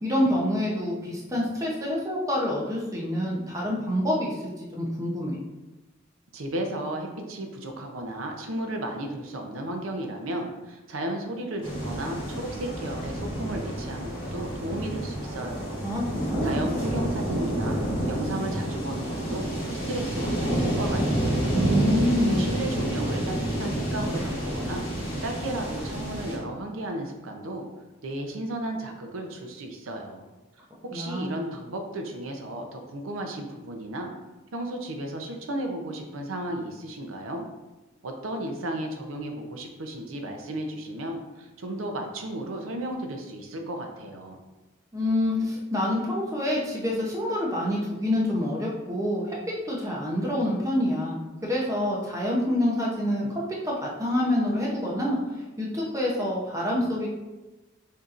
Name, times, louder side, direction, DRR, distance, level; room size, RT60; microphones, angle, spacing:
voice 1, 0.0-5.4 15.8-16.6 21.5-22.5 30.9-31.3 44.9-49.4 49.6-57.1, left 1 dB, 15° right, -3 dB, 0.6 m, -27 dB
voice 2, 6.3-15.8 16.4-17.8 18.1-19.5 19.9-21.6 22.2-24.8 25.2-27.7 28.0-30.2 30.9-34.1 34.5-37.4 38.0-44.4, right 1 dB, 90° right, 3 dB, 0.6 m, -34 dB
sound 1, 11.6-26.4, right 1 dB, 25° left, 1.4 m, -29 dB
6.5 x 2.8 x 2.5 m, 1.1 s
head